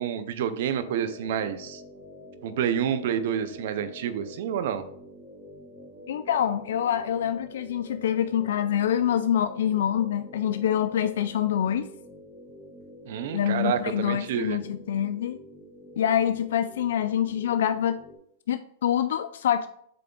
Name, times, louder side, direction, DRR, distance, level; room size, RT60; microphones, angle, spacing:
voice 1, 0.0-1.8 2.4-4.8 13.1-14.6, right 9 dB, 60° right, 11 dB, 0.6 m, -28 dB
sound 1, 0.7-18.2, left 1 dB, 10° right, 1.7 m, -47 dB
voice 2, 6.1-11.9 13.3-15.4 16.0-18.0 18.5-19.7, left 10 dB, 75° left, 10 dB, 0.3 m, -26 dB
7.6 x 3.4 x 3.8 m, 0.67 s
supercardioid pair, 150°, 0 cm